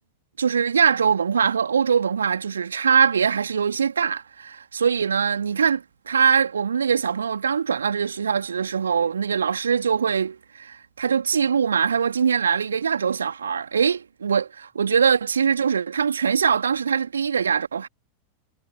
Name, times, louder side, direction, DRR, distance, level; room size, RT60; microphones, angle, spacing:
voice 1, 0.4-17.9, right 6 dB, 70° right, 2.7 m, -22 dB
figure-of-eight pair, 90°, 0 cm